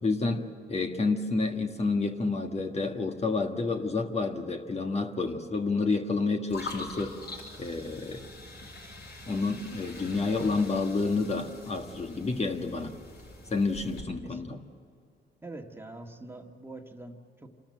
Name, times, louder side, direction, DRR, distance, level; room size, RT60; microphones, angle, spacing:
voice 1, 0.0-7.2 7.6-8.3 9.3-12.9 13.5-14.6, left 3 dB, 30° left, 4 dB, 1.5 m, -29 dB
sound 1, 6.5-14.0, left 2 dB, 55° left, 6.8 m, -44 dB
voice 2, 15.4-17.5, right 2 dB, 10° right, 3 dB, 1.8 m, -44 dB
27.0 x 13.0 x 7.7 m, 2.4 s
cardioid pair, 90°, 20 cm